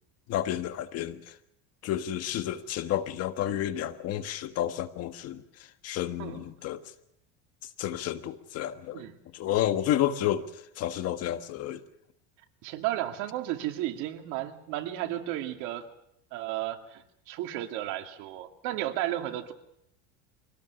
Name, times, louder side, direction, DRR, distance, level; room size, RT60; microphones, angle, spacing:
voice 1, 0.3-1.4 1.8-6.8 7.8-9.1 9.3-11.8, left 11 dB, 50° left, 10 dB, 1.5 m, -31 dB
voice 2, 8.9-9.2 12.6-15.9 16.3-19.5, right 13 dB, 70° right, 5 dB, 2.4 m, -33 dB
24.0 x 18.5 x 7.1 m, 0.76 s
supercardioid pair, 125°, 32 cm